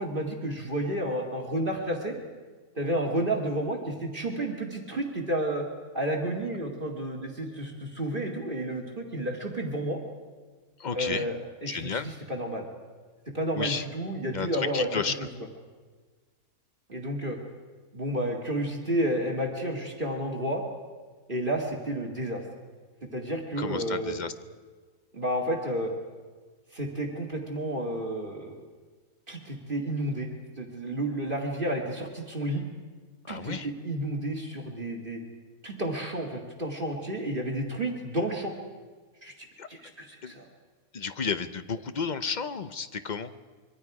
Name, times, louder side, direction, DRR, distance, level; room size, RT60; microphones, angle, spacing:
voice 1, 0.0-2.2 2.8-5.6 5.9-10.0 10.9-12.7 13.3-14.9 15.2-15.3 16.9-17.4 17.9-20.6 21.3-22.4 23.0-24.2 25.1-25.9 26.7-28.6 29.3-32.7 33.3-35.2 35.6-38.5 39.2-39.3 39.7-40.5, right 1 dB, 35° right, 1 dB, 2.3 m, -31 dB
voice 2, 10.8-11.3 11.7-12.1 13.5-13.8 14.3-14.5 14.7-15.1 23.6-24.3 33.3-33.7 39.6-39.7 40.2-40.3 40.9-43.3, left 5 dB, 45° left, 11 dB, 0.6 m, -32 dB
26.0 x 23.0 x 4.9 m, 1.4 s
omnidirectional pair, 1.6 m